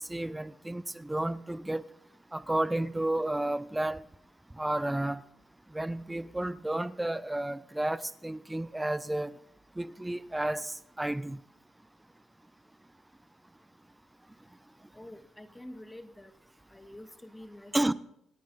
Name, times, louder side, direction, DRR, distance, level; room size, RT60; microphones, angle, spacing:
voice 1, 0.0-1.8 2.3-4.0 4.6-5.2 5.7-9.3 9.8-11.4 17.7-17.9, right 1 dB, 10° right, 0.6 m, -31 dB
voice 2, 14.9-16.3 16.7-17.9, left 1 dB, 10° left, 1.8 m, -48 dB
26.5 x 9.3 x 4.1 m
cardioid pair, 90°, 0 cm